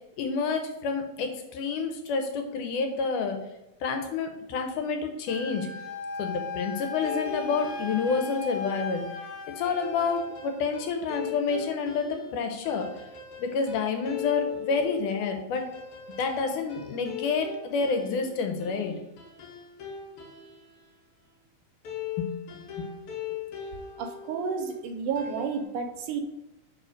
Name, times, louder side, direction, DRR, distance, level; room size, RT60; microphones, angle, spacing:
voice 1, 0.2-3.4 3.8-5.7 6.2-9.0 9.6-12.9 13.4-15.7 16.2-18.9 22.2-22.3 22.8-22.9, left 5 dB, 75° left, 5 dB, 2.2 m, -29 dB
Wind instrument woodwind instrument, 5.3-10.2, left 4 dB, 40° left, 2.1 m, -37 dB
sound 1, 6.8-8.7 9.6-20.8 21.8-24.8 25.2-25.6, left 8 dB, 60° left, 1.6 m, -40 dB
voice 2, 24.0-26.2, right 5 dB, 80° right, 6 dB, 2.1 m, -31 dB
5.1 x 4.7 x 5.0 m, 0.97 s
omnidirectional pair, 3.7 m